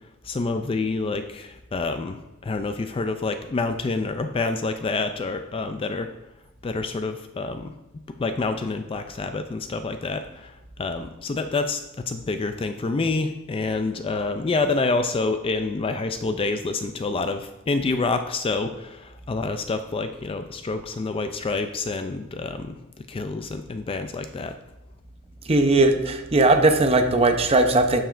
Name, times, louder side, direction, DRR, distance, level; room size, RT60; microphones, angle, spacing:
voice 1, 0.2-6.1 6.6-7.7 8.2-11.8 12.1-22.8 23.1-24.6, left 3 dB, 25° left, 8 dB, 0.3 m, -27 dB
voice 2, 25.5-28.0, right 2 dB, 25° right, 6 dB, 0.7 m, -18 dB
8.7 x 7.1 x 2.5 m, 0.99 s
head